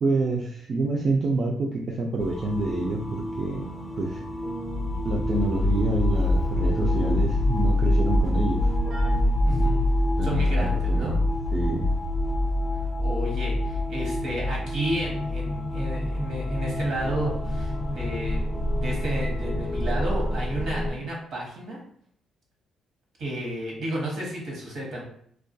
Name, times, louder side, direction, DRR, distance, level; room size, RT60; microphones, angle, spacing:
voice 1, 0.0-3.7 4.0-4.2 5.0-8.7 10.2-11.2 11.5-11.9, right 3 dB, 50° right, -1 dB, 0.3 m, -27 dB
sound 1, 2.2-20.9, left 1 dB, 30° left, 0.4 m, -26 dB
Keyboard (musical), 2.6-10.2, right 1 dB, 90° right, 1.2 m, -41 dB
voice 2, 9.4-9.8 10.2-11.2 13.0-21.8 23.2-25.0, right 1 dB, 75° right, -2 dB, 1.0 m, -32 dB
2.3 x 2.2 x 2.6 m, 0.63 s
cardioid pair, 90°, 0 cm